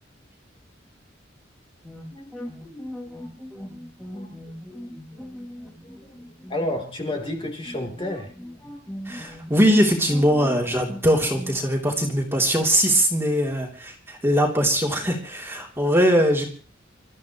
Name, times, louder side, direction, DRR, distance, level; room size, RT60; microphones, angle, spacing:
sound 1, 1.8-11.6, equal, 5° left, 4.6 m, -39 dB
voice 1, 2.1-3.4 4.2-4.6 5.1-5.3 5.5-8.3, left 1 dB, 30° left, 2 dB, 3.8 m, -33 dB
voice 2, 9.0-16.5, equal, 15° right, 0 dB, 3.3 m, -21 dB
29.0 x 14.0 x 3.2 m, 0.38 s
head